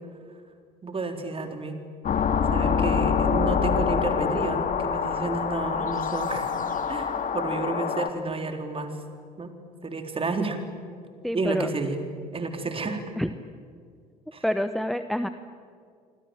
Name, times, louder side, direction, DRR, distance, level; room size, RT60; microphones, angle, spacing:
voice 1, 0.8-1.8 2.1-2.2 2.5-6.5 6.9-9.0 9.4-9.5 9.8-10.6 11.3-12.0 12.3-13.0 14.3-14.4, right 3 dB, 25° right, 5 dB, 4.0 m, -30 dB
sound 1, 2.0-8.1, left 6 dB, 40° left, 2.3 m, -25 dB
voice 2, 11.2-11.7 13.2-13.3 14.4-15.3, equal, ahead, 10 dB, 1.1 m, -27 dB
28.5 x 26.0 x 7.8 m, 2.2 s
figure-of-eight pair, 55°, 20 cm